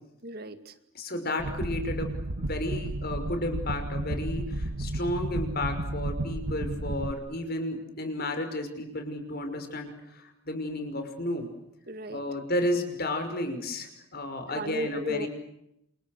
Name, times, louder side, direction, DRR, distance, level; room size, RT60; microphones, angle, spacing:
voice 1, 0.2-0.7 11.9-12.2 14.5-15.3, right 1 dB, 45° right, 10 dB, 2.2 m, -34 dB
voice 2, 0.9-2.1 2.4-11.5 12.1-15.3, left 1 dB, 45° left, 6 dB, 5.7 m, -32 dB
sound 1, 1.4-7.1, right 1 dB, 75° right, 1.4 m, -32 dB
29.0 x 28.5 x 6.7 m, 0.81 s
head